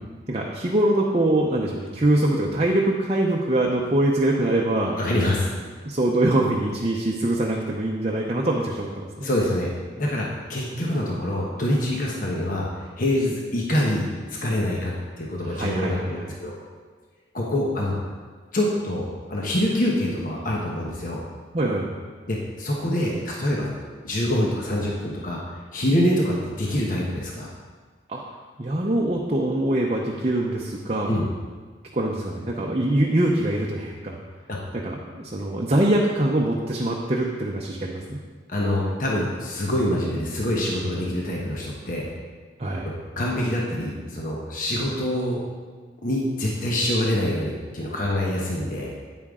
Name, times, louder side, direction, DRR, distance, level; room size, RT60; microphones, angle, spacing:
voice 1, 0.3-5.0 5.8-9.3 15.4-16.3 21.5-22.0 28.1-28.2 28.6-31.2 31.9-34.2 34.7-38.2 42.6-42.9, right 1 dB, 30° right, -2 dB, 0.7 m, -23 dB
voice 2, 5.0-5.5 9.2-9.7 10.0-14.1 14.4-14.9 15.2-16.5 17.3-17.9 18.5-21.2 22.3-25.4 25.7-27.5 31.1-31.3 34.5-34.6 38.5-42.1 42.8-45.4 46.0-48.9, left 1 dB, 45° left, -3 dB, 1.2 m, -25 dB
9.4 x 8.8 x 3.7 m, 1.5 s
head